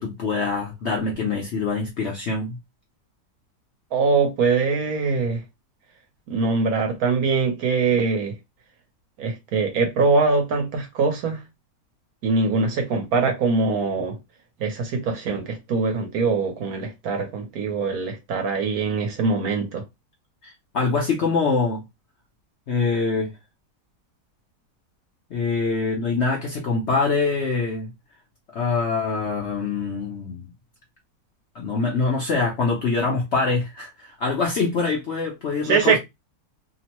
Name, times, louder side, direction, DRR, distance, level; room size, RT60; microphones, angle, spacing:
voice 1, 0.0-2.6 13.7-13.8 20.4-21.8 22.7-23.3 25.3-27.9 28.5-30.5 31.5-36.0, left 4 dB, 60° left, 0.8 m, -24 dB
voice 2, 3.9-5.4 6.3-8.4 9.2-11.4 12.2-14.1 14.6-19.8 35.6-36.0, right 4 dB, 65° right, 1.1 m, -22 dB
2.9 x 2.1 x 2.9 m
omnidirectional pair, 1.8 m